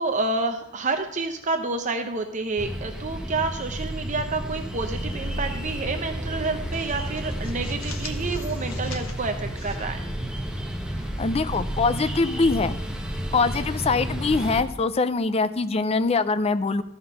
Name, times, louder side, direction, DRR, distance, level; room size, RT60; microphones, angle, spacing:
voice 1, 0.0-10.0, right 3 dB, 35° right, 6 dB, 0.6 m, -29 dB
sound 1, 2.6-14.6, equal, 5° right, 1.0 m, -31 dB
sound 2, 4.3-13.9, right 1 dB, 60° right, 1.2 m, -42 dB
sound 3, 4.5-5.4 5.7-5.9 6.3-10.7, left 5 dB, 75° left, 1.3 m, -45 dB
voice 2, 11.2-12.8 13.3-16.8, left 3 dB, 30° left, 12 dB, 0.4 m, -23 dB
14.0 x 5.8 x 5.5 m, 0.79 s
head